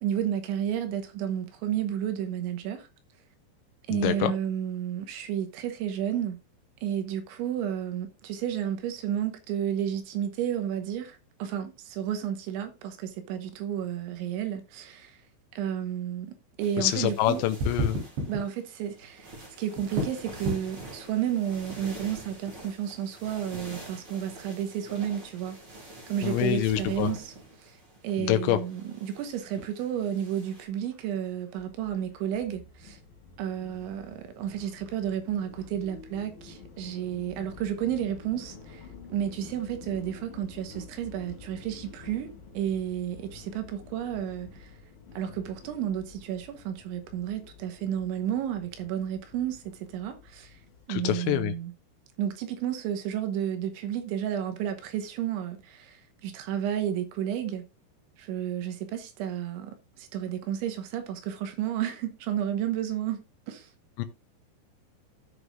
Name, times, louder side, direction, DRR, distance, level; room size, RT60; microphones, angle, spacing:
voice 1, 0.0-2.9 3.9-6.4 6.8-15.2 15.5-17.4 18.3-25.6 26.1-27.3 27.6-27.8 28.0-33.0 33.4-44.8 45.1-50.6 50.9-51.7 52.2-57.6 58.2-63.2 63.5-63.7, right 10 dB, 80° right, 3.4 m, -32 dB
voice 2, 3.9-4.3 16.8-18.0 26.2-27.1 28.2-28.6 50.9-51.5 64.0-64.1, left 13 dB, 80° left, 2.8 m, -26 dB
sound 1, 16.6-30.7, right 2 dB, 30° right, 4.3 m, -46 dB
sound 2, 17.6-36.1, equal, 65° right, 5.6 m, -41 dB
sound 3, 31.6-50.9, left 5 dB, 55° left, 3.8 m, -49 dB
16.0 x 6.4 x 2.5 m
omnidirectional pair, 5.5 m